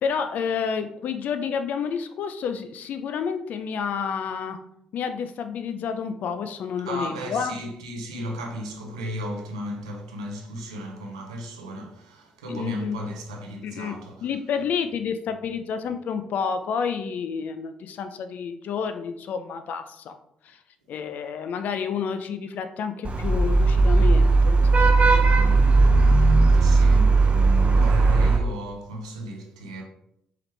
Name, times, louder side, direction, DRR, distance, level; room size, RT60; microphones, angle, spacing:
voice 1, 0.0-4.6 4.9-7.5 12.5-13.0 13.6-20.2 20.4-20.6 20.9-25.3, left 6 dB, 60° left, 0.4 m, -30 dB
voice 2, 6.8-14.3 25.9-29.8, equal, 90° right, 0.6 m, -35 dB
Vehicle horn car horn honking / Traffic noise roadway noise, 23.0-28.4, right 3 dB, 40° right, 0.6 m, -17 dB
4.7 x 3.1 x 3.2 m
hypercardioid pair, 45°, 3 cm